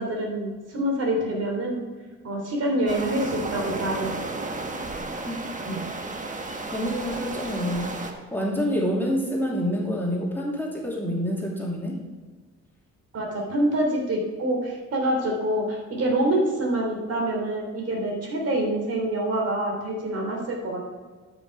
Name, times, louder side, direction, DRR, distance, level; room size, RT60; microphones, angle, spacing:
voice 1, 0.0-1.8 2.2-4.1 5.7-5.8 13.1-20.8, right 1 dB, 55° right, 0 dB, 3.5 m, -26 dB
sound 1, 2.9-8.1, right 2 dB, 25° right, 1.4 m, -33 dB
voice 2, 6.7-7.9 8.3-12.0, equal, 5° left, -4 dB, 2.7 m, -27 dB
12.5 x 6.2 x 4.8 m, 1.4 s
cardioid pair, 90°, 30 cm